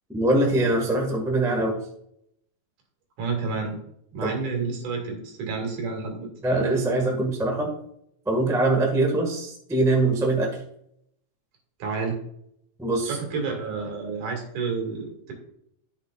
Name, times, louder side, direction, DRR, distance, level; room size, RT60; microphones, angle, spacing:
voice 1, 0.1-1.8 4.2-4.3 6.4-7.7 8.2-10.5 12.8-13.2, right 2 dB, 5° right, 1 dB, 0.6 m, -23 dB
voice 2, 3.2-3.8 4.1-6.3 11.8-12.2 13.0-15.3, right 4 dB, 80° right, 1 dB, 3.6 m, -30 dB
10.5 x 7.8 x 2.4 m, 0.72 s
omnidirectional pair, 3.5 m